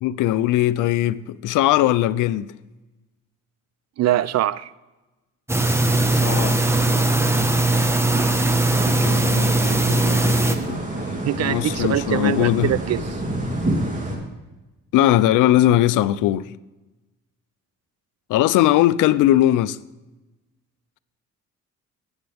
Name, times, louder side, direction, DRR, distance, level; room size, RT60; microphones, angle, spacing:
voice 1, 0.0-2.5 6.1-6.7 7.4-7.5 9.0-10.8 11.4-12.7 14.9-16.5 18.3-19.8, left 13 dB, 85° left, 0.5 m, -20 dB
voice 2, 4.0-4.7 11.2-13.0, right 12 dB, 60° right, 0.5 m, -23 dB
sound 1, 5.5-10.5, right 2 dB, 10° right, 1.1 m, -19 dB
sound 2, 8.7-14.2, right 1 dB, 25° right, 3.0 m, -28 dB
18.0 x 8.0 x 3.4 m
cardioid pair, 90°, 30 cm